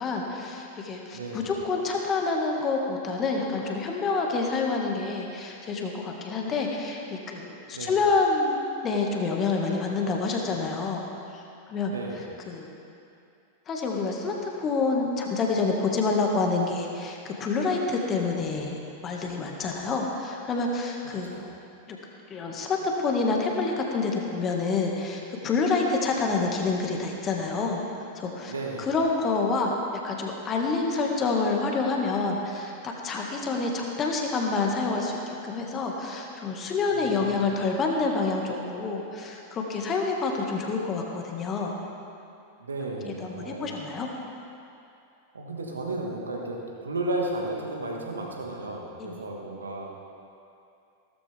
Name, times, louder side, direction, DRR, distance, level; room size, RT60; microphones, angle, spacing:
voice 1, 0.0-11.0 11.3-11.9 12.5-12.7 13.7-21.4 21.9-22.0 22.3-27.8 28.2-28.5 28.8-29.8 30.0-41.8 43.0-44.1 49.0-49.2, left 4 dB, 25° left, 0 dB, 1.9 m, -27 dB
voice 2, 1.1-1.6 7.7-8.0 11.8-12.3 21.3-21.4 28.5-28.9 36.9-37.5 42.6-43.8 45.3-49.9, right 2 dB, 75° right, 0 dB, 2.0 m, -34 dB
16.5 x 13.5 x 3.6 m, 2.7 s
figure-of-eight pair, 90°, 0 cm